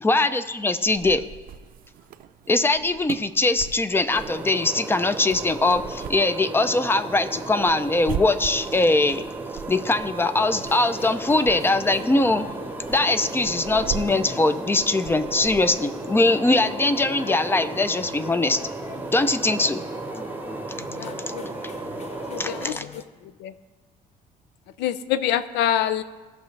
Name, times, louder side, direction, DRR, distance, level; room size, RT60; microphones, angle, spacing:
voice 1, 0.0-1.2 2.5-9.2 9.7-12.5 12.9-18.6 19.1-19.8 22.4-22.8, left 2 dB, 15° left, 12 dB, 0.4 m, -22 dB
sound 1, 0.9-16.1, right 8 dB, 55° right, 0.5 m, -40 dB
sound 2, 4.1-22.7, right 3 dB, 10° right, 0.8 m, -35 dB
sound 3, 10.5-23.0, left 5 dB, 40° left, 0.7 m, -41 dB
voice 2, 21.0-21.5 22.3-22.8 23.2-23.5 24.8-26.0, left 10 dB, 90° left, 14 dB, 0.5 m, -26 dB
16.5 x 5.6 x 3.2 m, 1.3 s
cardioid pair, 110°, 17 cm